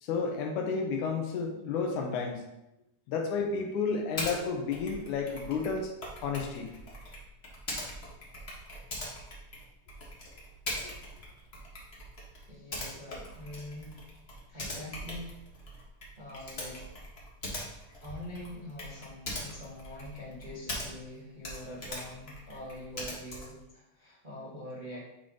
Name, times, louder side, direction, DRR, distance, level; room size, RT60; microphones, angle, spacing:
voice 1, 0.0-2.4 3.1-5.9 6.2-6.7, left 5 dB, 90° left, 2 dB, 2.4 m, -31 dB
Typing, 4.2-4.4 4.7-21.1 21.4-23.6, left 1 dB, 50° left, 0.7 m, -41 dB
voice 2, 12.5-14.0 14.5-15.3 16.2-16.8 17.9-25.1, left 1 dB, 25° right, -7 dB, 1.0 m, -44 dB
8.3 x 3.8 x 3.7 m, 0.88 s
omnidirectional pair, 3.4 m